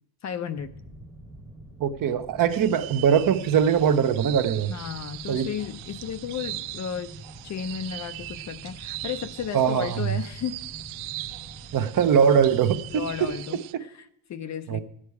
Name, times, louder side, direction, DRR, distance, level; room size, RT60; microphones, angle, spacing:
voice 1, 0.2-0.8 4.7-7.1 7.4-10.6 12.9-14.8, left 8 dB, 35° left, 11 dB, 0.5 m, -34 dB
sound 1, 0.6-13.4, right 1 dB, 10° right, 1.0 m, -46 dB
voice 2, 1.8-4.7 5.3-5.5 9.5-10.2 11.7-13.3 14.7-14.8, right 8 dB, 40° right, 10 dB, 0.8 m, -22 dB
sound 2, 2.5-13.7, right 17 dB, 75° right, 0.7 m, -40 dB
12.5 x 8.7 x 4.7 m, 0.76 s
cardioid pair, 120°, 49 cm